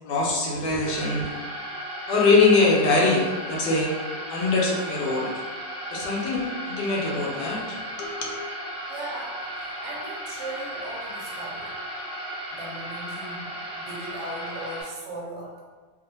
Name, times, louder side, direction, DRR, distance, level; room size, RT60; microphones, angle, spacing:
voice 1, 0.0-1.3 2.1-3.9 4.3-5.3 5.9-8.3, left 3 dB, 75° left, -2 dB, 1.2 m, -23 dB
sound 1, 0.6-14.8, right 1 dB, 45° right, 1.0 m, -35 dB
voice 2, 7.4-8.1 8.9-11.7 12.5-15.6, right 1 dB, 75° right, -3 dB, 1.1 m, -38 dB
3.0 x 2.1 x 2.8 m, 1.4 s
omnidirectional pair, 2.0 m